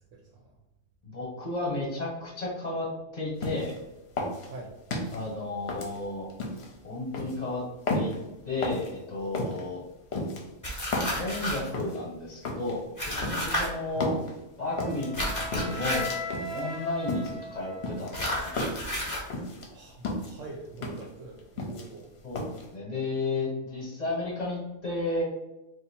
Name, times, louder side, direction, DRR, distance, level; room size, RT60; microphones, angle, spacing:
voice 1, 0.1-0.6 4.4-4.7 13.8-14.1 19.7-22.1, right 2 dB, 85° right, 0 dB, 0.9 m, -44 dB
voice 2, 1.0-2.9 3.1-3.8 5.1-6.3 6.8-7.6 7.9-8.1 8.4-9.8 11.2-12.8 13.1-14.2 14.6-16.1 16.5-18.6 22.2-22.5 22.7-25.2, left 2 dB, 35° left, -4 dB, 1.1 m, -33 dB
sound 1, 3.4-3.8 4.2-5.2 5.7-6.7 7.1-7.4 7.9-8.2 8.6-8.9 9.3-9.6 10.1-11.2 11.7-12.0 12.4-12.8 13.2-13.6 14.0-14.3 14.8-15.1 15.5-15.9 16.3-16.6 17.1-17.4 17.8-18.9 19.3-19.7 20.0-20.4 20.8-21.1 21.4-22.0 22.4-22.6, left 2 dB, 60° left, 0.9 m, -32 dB
sound 2, 10.6-11.7 13.0-13.7 15.1-16.2 18.1-19.3, equal, 15° left, 0.8 m, -31 dB
Wind instrument woodwind instrument, 14.6-18.7, left 2 dB, ahead, 0.4 m, -39 dB
2.7 x 2.4 x 4.2 m, 0.94 s
omnidirectional pair, 1.3 m